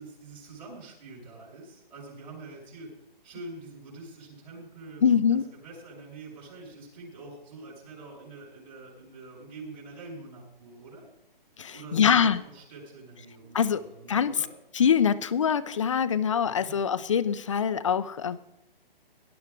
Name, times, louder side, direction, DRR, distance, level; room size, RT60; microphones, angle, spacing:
voice 1, 0.0-2.9 3.2-11.1 11.7-14.5 16.4-16.8, right 3 dB, 50° right, -6 dB, 6.2 m, -45 dB
voice 2, 5.0-5.4 11.6-12.4 13.5-14.4 14.7-18.4, left 7 dB, 35° left, 15 dB, 0.5 m, -24 dB
18.0 x 11.5 x 3.7 m, 0.80 s
hypercardioid pair, 165°, 29 cm